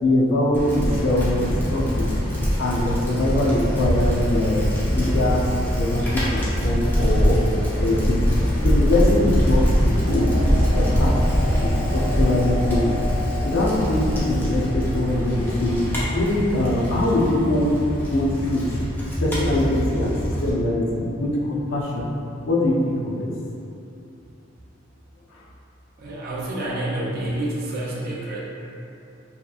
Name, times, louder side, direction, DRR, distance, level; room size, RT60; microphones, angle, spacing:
voice 1, 0.0-2.1 2.6-5.5 5.8-7.4 7.8-8.2 8.6-11.3 11.6-13.1 13.4-15.9 16.1-17.8 18.1-18.7 19.2-22.1 22.5-23.3, left 1 dB, 90° left, -3 dB, 0.4 m, -23 dB
Bicycle, 0.5-20.5, equal, 10° left, 0.5 m, -23 dB
sound 1, 10.0-16.6, left 1 dB, 60° left, 0.8 m, -32 dB
voice 2, 26.0-28.4, right 1 dB, 50° right, -5 dB, 0.4 m, -28 dB
2.7 x 2.3 x 2.4 m, 2.7 s
head